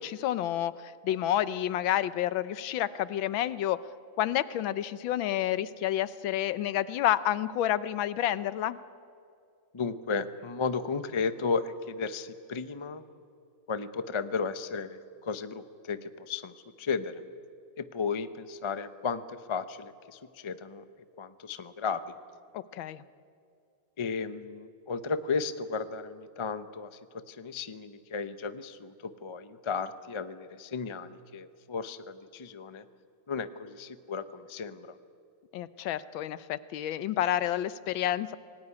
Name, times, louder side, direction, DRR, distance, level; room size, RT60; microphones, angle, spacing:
voice 1, 0.0-3.8 4.2-8.8 22.5-23.0 35.5-38.4, left 12 dB, 90° left, 16 dB, 1.6 m, -29 dB
voice 2, 9.7-13.0 13.7-17.2 17.8-20.8 21.2-22.0 24.0-32.8 33.3-34.9, left 5 dB, 45° left, 11 dB, 0.3 m, -34 dB
27.0 x 18.5 x 9.7 m, 2.4 s
omnidirectional pair, 2.1 m